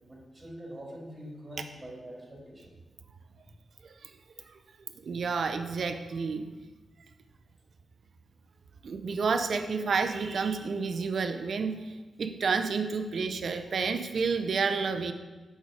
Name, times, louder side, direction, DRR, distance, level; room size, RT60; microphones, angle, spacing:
voice 1, 0.1-2.7, equal, 20° right, -2 dB, 1.9 m, -44 dB
voice 2, 5.0-6.5 8.8-15.1, right 5 dB, 65° right, 8 dB, 0.5 m, -30 dB
6.0 x 4.1 x 4.8 m, 1.2 s
cardioid pair, 70°, 0 cm